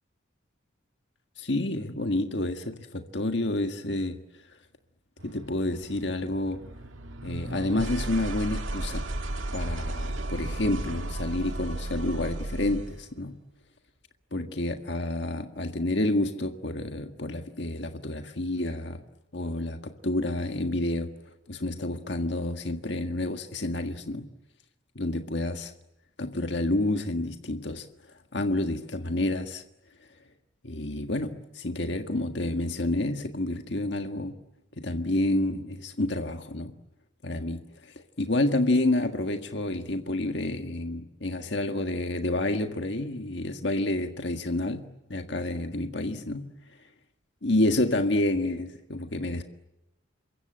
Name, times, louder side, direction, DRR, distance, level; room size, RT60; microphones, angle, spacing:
voice 1, 1.4-4.2 5.2-6.6 7.2-9.0 9.5-13.4 14.3-19.0 19.3-21.1 21.5-24.3 25.0-25.7 26.2-27.9 28.3-29.6 30.6-34.4 34.8-36.7 37.2-37.6 38.2-44.8 45.1-46.5 47.4-49.4, left 1 dB, 60° left, 1.7 m, -29 dB
sound 1, 5.2-13.0, right 1 dB, 80° right, 1.9 m, -34 dB
28.0 x 23.5 x 8.9 m
head